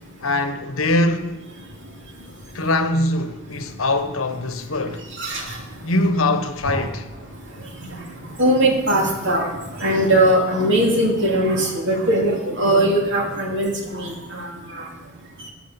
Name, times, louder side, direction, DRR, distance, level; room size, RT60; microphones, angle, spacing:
voice 1, 0.2-1.4 2.5-5.0 5.8-7.1, left 2 dB, 75° left, 1.2 m, -22 dB
voice 2, 5.2-5.6 6.7-6.8 8.4-9.5 9.8-14.5 14.8-14.9, right 1 dB, 60° right, 2.8 m, -20 dB
11.5 x 10.0 x 7.1 m
head